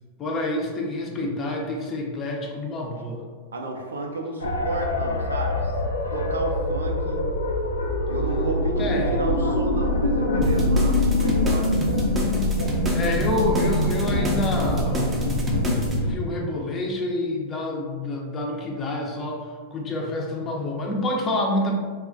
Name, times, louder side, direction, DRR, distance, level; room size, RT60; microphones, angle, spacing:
voice 1, 0.2-3.2 8.8-9.2 12.9-15.1 15.4-21.7, left 1 dB, 30° left, 0 dB, 0.6 m, -28 dB
voice 2, 3.5-5.7 6.1-7.2 8.1-11.8 12.9-13.3, right 2 dB, 80° right, 2 dB, 0.4 m, -31 dB
sound 1, 4.4-16.2, left 1 dB, 85° left, 0.3 m, -24 dB
sound 2, 10.4-16.0, right 1 dB, 20° right, 0.6 m, -29 dB
2.3 x 2.1 x 3.8 m, 1.6 s
hypercardioid pair, 100°, 0 cm